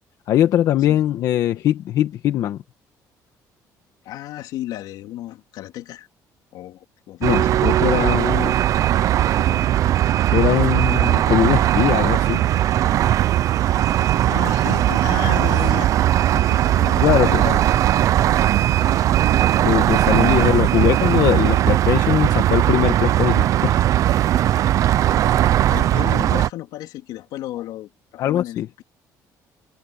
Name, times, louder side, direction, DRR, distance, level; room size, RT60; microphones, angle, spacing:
voice 1, 0.3-2.6 7.2-8.5 10.3-12.5 17.0-17.3 19.6-23.7 28.2-28.7, left 12 dB, 60° left, 1.3 m, -21 dB
voice 2, 4.0-6.1 6.5-7.4 14.2-15.9 16.3-17.6 18.9-19.2 20.4-20.7 25.2-28.8, left 14 dB, 80° left, 3.2 m, -33 dB
sound 1, 7.2-26.5, right 12 dB, 55° right, 0.5 m, -18 dB
cardioid pair, 160°, 7 cm